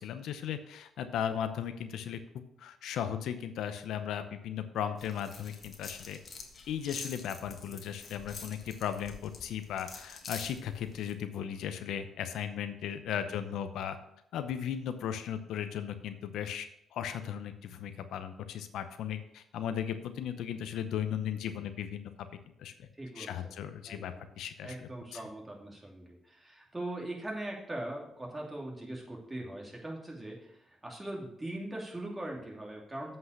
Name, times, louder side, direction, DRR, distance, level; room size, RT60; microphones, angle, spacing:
voice 1, 0.0-6.2 6.7-14.0 14.3-16.7 16.9-22.0 22.6-22.9 23.2-24.8 25.1-25.2, left 9 dB, 80° left, 10 dB, 0.7 m, -36 dB
sound 1, 5.0-11.1, left 4 dB, 50° left, 1.6 m, -47 dB
voice 2, 22.9-23.6 23.9-24.3 24.6-33.2, right 1 dB, 15° right, -1 dB, 2.8 m, -41 dB
8.1 x 5.5 x 6.5 m, 0.77 s
cardioid pair, 90°, 0 cm